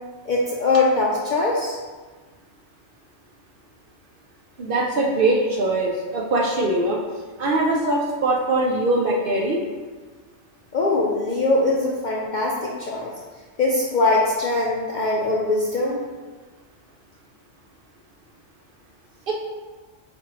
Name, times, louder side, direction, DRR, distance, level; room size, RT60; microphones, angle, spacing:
voice 1, 0.3-1.8 10.7-13.1 13.6-16.0, left 2 dB, 60° left, -3 dB, 0.5 m, -22 dB
voice 2, 4.6-7.0 7.4-9.6 19.3-19.4, right 2 dB, 60° right, -2 dB, 0.6 m, -22 dB
4.3 x 4.2 x 2.9 m, 1.4 s
omnidirectional pair, 1.3 m